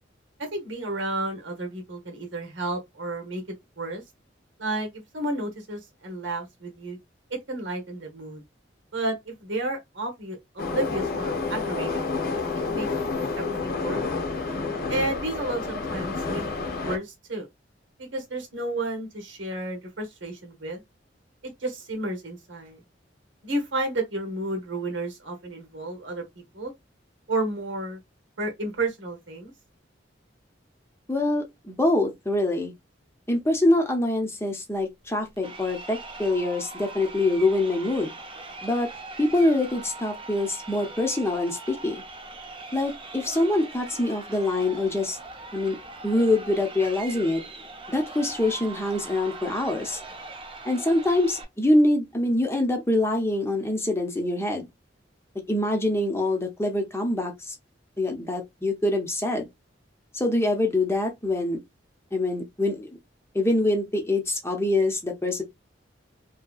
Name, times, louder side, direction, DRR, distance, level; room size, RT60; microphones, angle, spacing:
voice 1, 0.5-3.4 3.8-4.0 4.6-7.0 7.5-8.4 8.9-12.1 12.7-12.9 13.4-14.0 14.9-17.5 18.0-20.8 21.4-22.8 23.4-26.2 26.5-26.7 27.3-28.0 28.4-29.5, right 2 dB, 85° right, 1.1 m, -31 dB
Subway metro underground, 10.6-17.0, left 3 dB, 55° left, 0.7 m, -29 dB
voice 2, 31.1-32.7 33.3-38.1 38.6-38.9 39.2-42.0 42.7-45.2 45.5-45.8 46.0-47.4 47.9-50.0 50.6-54.7 55.5-57.5 58.0-59.5 60.1-61.6 62.1-62.9 63.3-65.4, left 1 dB, 15° left, 0.6 m, -25 dB
Crowd, 35.4-51.4, right 3 dB, 30° right, 0.6 m, -41 dB
2.7 x 2.7 x 2.3 m
head